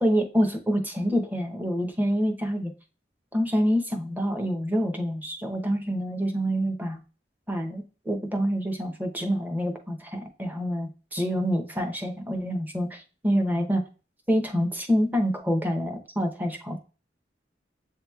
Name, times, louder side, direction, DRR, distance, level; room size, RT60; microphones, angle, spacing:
voice 1, 0.0-2.7 3.3-7.0 7.5-13.8 14.3-16.8, equal, 10° right, 4 dB, 0.7 m, -27 dB
7.6 x 2.9 x 2.3 m, 0.35 s
head